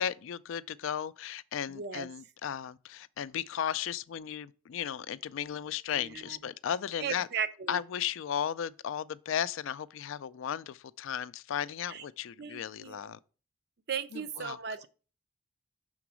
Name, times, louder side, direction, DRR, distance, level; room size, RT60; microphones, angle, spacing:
voice 1, 0.0-7.3 7.7-13.2 14.1-14.6, left 9 dB, 75° left, 0.3 m, -35 dB
voice 2, 1.7-2.1 5.9-6.4 7.0-7.8 11.9-12.0 12.4-13.1 13.9-14.9, right 6 dB, 50° right, 0.5 m, -37 dB
6.0 x 3.8 x 6.1 m
head